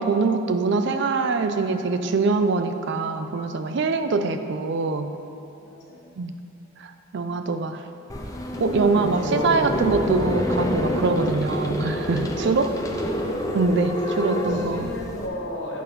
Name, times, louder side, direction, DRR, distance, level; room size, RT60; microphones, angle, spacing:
voice 1, 0.0-5.1 6.2-6.3 7.1-7.8 8.6-12.7 13.5-14.9, right 4 dB, 60° right, 8 dB, 0.4 m, -23 dB
voice 2, 5.6-6.1 9.2-9.7 12.3-13.2 14.0-15.8, left 1 dB, 60° left, -2 dB, 1.3 m, -34 dB
sound 1, 8.1-15.3, equal, 15° left, 0.6 m, -27 dB
8.4 x 4.1 x 5.7 m, 2.7 s
head